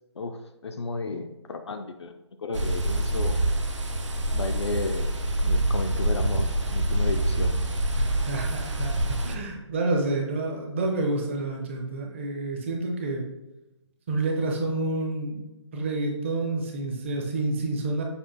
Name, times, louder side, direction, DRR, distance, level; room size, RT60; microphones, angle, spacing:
voice 1, 0.2-2.1 2.4-3.4 4.3-5.1 5.4-7.6, left 3 dB, 65° left, 5 dB, 0.4 m, -33 dB
sound 1, 2.5-9.4, right 1 dB, 80° right, 0.6 m, -26 dB
voice 2, 8.0-13.2 14.1-15.4 15.7-18.0, right 2 dB, 25° right, 1 dB, 0.5 m, -29 dB
6.7 x 2.4 x 2.6 m, 0.98 s
figure-of-eight pair, 150°, 15 cm